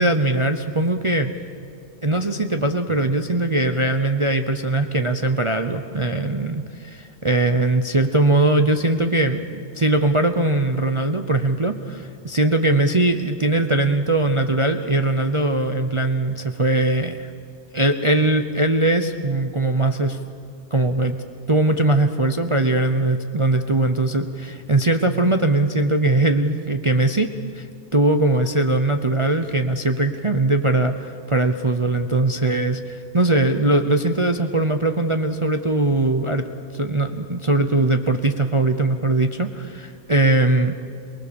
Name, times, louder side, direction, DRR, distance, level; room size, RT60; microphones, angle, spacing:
voice 1, 0.0-1.3 2.0-17.3 17.7-20.2 20.7-21.2 21.5-27.7 27.9-36.5 36.7-40.7, right 2 dB, 30° right, 7 dB, 0.7 m, -20 dB
27.5 x 19.5 x 7.1 m, 2.4 s
omnidirectional pair, 1.5 m